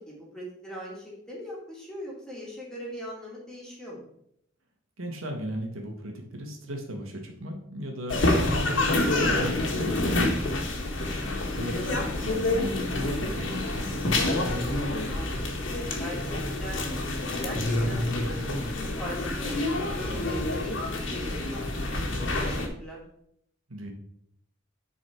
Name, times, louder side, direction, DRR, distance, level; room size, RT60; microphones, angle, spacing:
voice 1, 0.0-4.0 10.8-11.1 15.1-15.4 16.0-18.6 19.0-22.1 22.4-23.0, equal, 5° left, -4 dB, 2.2 m, -41 dB
voice 2, 5.0-14.7 23.7-23.9, equal, 90° right, 2 dB, 1.6 m, -37 dB
sound 1, 8.1-22.7, left 2 dB, 70° left, 1.4 m, -27 dB
9.5 x 4.2 x 4.5 m, 0.72 s
head